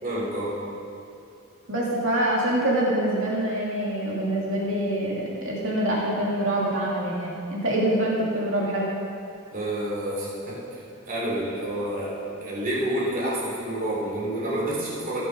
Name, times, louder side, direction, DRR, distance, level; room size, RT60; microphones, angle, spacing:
voice 1, 0.0-0.6 9.5-10.8 11.1-15.2, right 1 dB, 40° right, -6 dB, 3.3 m, -29 dB
voice 2, 1.7-8.9, right 1 dB, 60° right, -4 dB, 2.6 m, -25 dB
16.0 x 7.0 x 5.3 m, 2.6 s
head